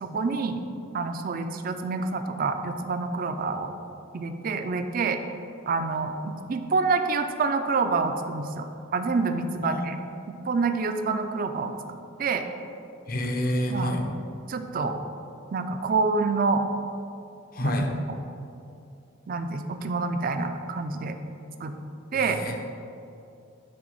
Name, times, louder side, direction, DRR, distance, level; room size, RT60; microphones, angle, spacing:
voice 1, 0.0-0.6 0.9-3.7 4.1-5.2 5.7-8.7 8.9-10.0 10.5-12.4 13.7-13.9 14.5-15.0 15.5-16.7 17.6-17.7 18.1-18.2 19.3-21.2 21.6-21.8 22.1-22.4, right 4 dB, 45° right, 7 dB, 0.4 m, -27 dB
voice 2, 13.1-14.0 17.5-17.9 22.1-22.6, equal, 45° left, 3 dB, 0.7 m, -28 dB
7.8 x 3.4 x 5.4 m, 2.6 s
head